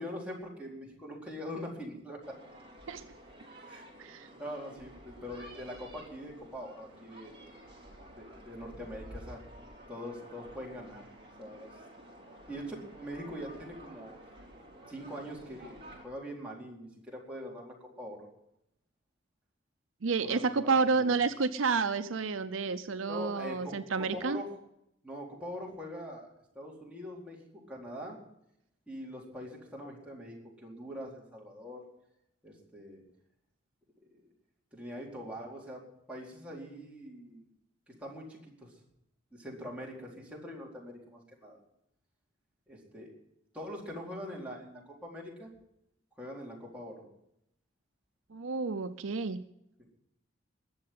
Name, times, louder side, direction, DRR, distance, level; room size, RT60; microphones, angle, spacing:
voice 1, 0.0-2.4 3.7-3.8 4.4-7.5 8.2-9.4 9.9-11.1 11.4-11.7 12.5-14.2 14.9-18.3 20.2-21.1 23.1-24.5 25.0-26.3 26.5-28.2 28.9-31.8 32.4-33.0 34.7-37.4 37.9-38.7 39.3-41.6 42.7-43.1 43.5-45.5 46.2-47.0, equal, 5° right, -4 dB, 4.3 m, -43 dB
sound 1, 2.2-16.1, right 1 dB, 25° right, 3.7 m, -51 dB
voice 2, 20.0-24.4 48.3-49.4, right 4 dB, 70° right, 10 dB, 0.7 m, -30 dB
21.5 x 7.6 x 7.8 m, 0.79 s
head